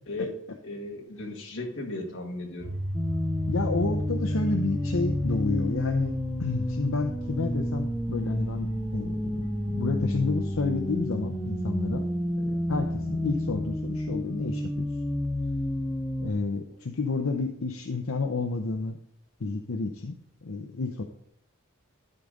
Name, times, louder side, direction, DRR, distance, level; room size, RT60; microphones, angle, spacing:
voice 1, 0.6-2.7, left 2 dB, 60° left, 1 dB, 1.9 m, -35 dB
sound 1, 2.6-13.5, equal, 55° right, 1.5 m, -36 dB
sound 2, 2.9-16.3, left 1 dB, 5° left, 0.6 m, -30 dB
voice 2, 3.5-6.1 6.4-12.0 12.4-14.9 16.2-19.0 19.4-20.2 20.4-21.0, left 3 dB, 80° left, 5 dB, 0.7 m, -30 dB
12.5 x 5.0 x 4.0 m, 0.77 s
head